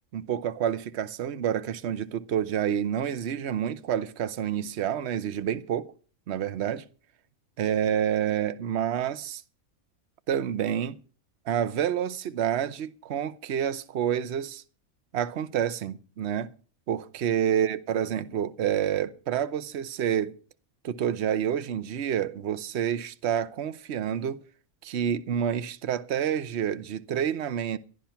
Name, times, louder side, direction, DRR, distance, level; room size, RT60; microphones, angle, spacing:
voice 1, 0.1-5.9 6.3-6.8 7.6-9.4 10.3-11.0 11.5-14.6 15.1-16.5 16.9-20.3 20.8-24.4 24.8-27.8, right 9 dB, 55° right, 1.0 m, -28 dB
12.5 x 11.5 x 5.7 m
omnidirectional pair, 1.5 m